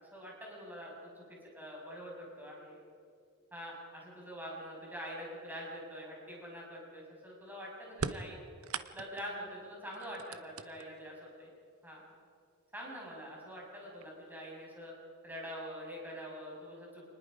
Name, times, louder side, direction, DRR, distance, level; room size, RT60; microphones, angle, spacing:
voice 1, 0.1-2.8 3.5-8.4 8.9-11.5 11.8-12.0 12.7-14.9 15.2-17.1, equal, 10° right, -3 dB, 6.2 m, -45 dB
sound 1, 7.9-9.4 9.9-11.1 12.1-12.2 13.2-13.3 13.8-14.3, right 5 dB, 75° right, 0.8 m, -40 dB
27.5 x 20.0 x 5.1 m, 2.3 s
head